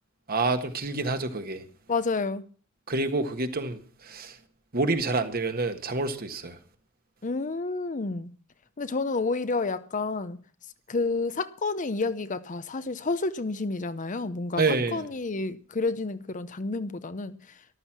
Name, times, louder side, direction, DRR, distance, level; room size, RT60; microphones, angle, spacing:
voice 1, 0.3-1.6 2.9-3.8 4.0-4.3 4.7-6.6 14.6-15.1, right 3 dB, 45° right, 1.6 m, -27 dB
voice 2, 1.9-2.4 7.2-8.3 8.8-10.4 10.9-14.6 14.9-17.3, left 3 dB, 40° left, 0.7 m, -29 dB
13.5 x 12.0 x 6.0 m
head